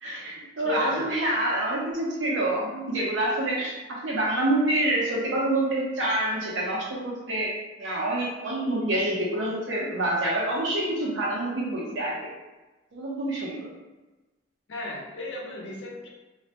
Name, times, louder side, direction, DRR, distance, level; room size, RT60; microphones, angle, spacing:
voice 1, 0.0-3.7 4.0-12.3 12.9-13.7, right 1 dB, 85° right, -4 dB, 0.8 m, -27 dB
voice 2, 0.6-1.1 14.7-16.1, left 3 dB, 85° left, -2 dB, 0.6 m, -34 dB
2.4 x 2.0 x 2.9 m, 1.1 s
head